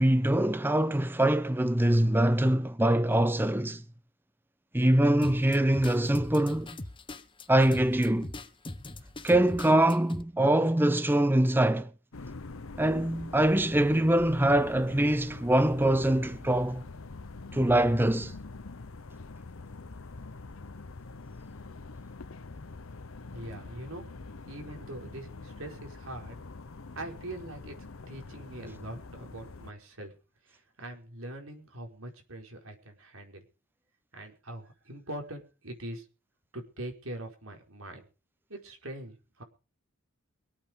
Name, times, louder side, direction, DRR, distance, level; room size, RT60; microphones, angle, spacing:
voice 1, 0.0-3.8 4.7-6.8 7.5-8.3 9.2-11.9 12.8-16.8 17.5-18.3, right 1 dB, 10° right, 0.7 m, -24 dB
sound 1, 5.2-10.2, left 1 dB, 25° left, 1.2 m, -41 dB
sound 2, 12.1-29.7, left 3 dB, 85° left, 0.9 m, -45 dB
voice 2, 23.3-24.0 24.4-26.4 26.9-27.8 28.1-30.1 30.4-33.4 34.1-36.1 36.5-38.0 38.5-39.4, right 1 dB, 85° right, 4.8 m, -42 dB
23.5 x 8.8 x 5.3 m
head